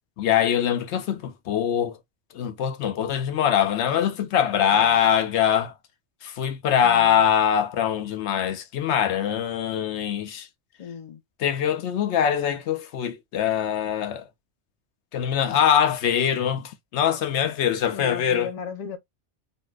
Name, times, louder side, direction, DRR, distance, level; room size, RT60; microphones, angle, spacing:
voice 1, 0.2-2.0 2.3-5.7 6.2-10.5 11.4-14.2 15.1-18.5, left 9 dB, 70° left, 0.8 m, -23 dB
voice 2, 10.8-11.2 15.5-15.6 17.9-19.0, left 7 dB, 50° left, 0.5 m, -35 dB
4.1 x 2.1 x 2.2 m
omnidirectional pair, 1.2 m